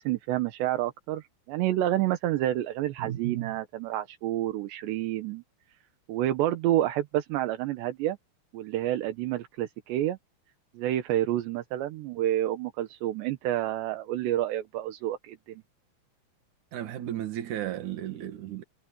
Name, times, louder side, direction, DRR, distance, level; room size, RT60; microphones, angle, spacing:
voice 1, 0.0-5.4 6.1-8.2 8.5-10.2 10.7-15.6, right 13 dB, 80° right, 3.4 m, -29 dB
voice 2, 3.0-3.6 16.7-18.6, right 11 dB, 55° right, 2.6 m, -34 dB
omnidirectional pair, 5.0 m